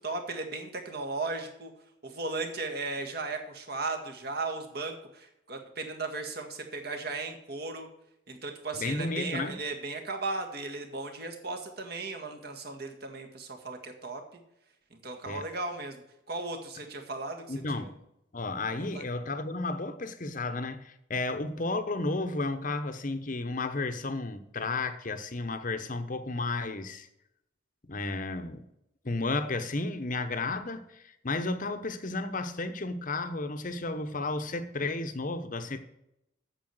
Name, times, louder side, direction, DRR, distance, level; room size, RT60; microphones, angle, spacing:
voice 1, 0.0-1.7 2.0-7.9 8.3-14.2 14.9-17.4 17.7-17.9 18.9-19.1, right 3 dB, 50° right, 1.8 m, -36 dB
voice 2, 8.7-9.6 15.2-15.4 17.5-18.0 18.3-27.1 27.8-28.6 29.0-35.8, left 3 dB, 40° left, 0.9 m, -33 dB
8.8 x 7.1 x 7.7 m
head